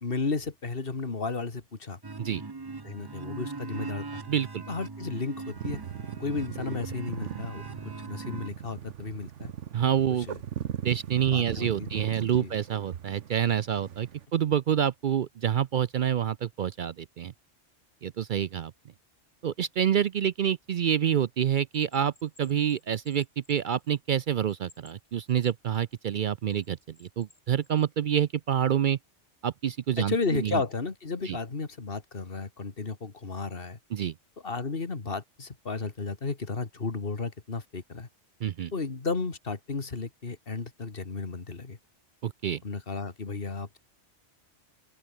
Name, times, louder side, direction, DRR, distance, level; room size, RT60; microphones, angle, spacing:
voice 1, 0.0-2.0 2.8-4.2 4.7-5.8 6.2-9.5 10.1-10.4 11.3-11.9 12.4-12.5 30.0-33.8 34.4-38.1 38.7-41.8 42.6-43.8, left 4 dB, 50° left, 2.3 m, -33 dB
sound 1, 2.0-8.5, right 3 dB, 20° right, 0.8 m, -40 dB
voice 2, 4.3-4.6 9.7-10.3 10.8-17.3 18.0-18.7 19.4-29.0 29.4-30.6 31.2-31.4 33.9-34.1 38.4-38.7 42.2-42.6, right 9 dB, 60° right, 0.5 m, -27 dB
sound 2, 5.6-14.3, right 9 dB, 85° right, 1.2 m, -39 dB
Bell, 21.7-24.1 24.5-26.0 26.5-27.9, left 2 dB, 80° left, 5.9 m, -61 dB
open air
omnidirectional pair, 1.2 m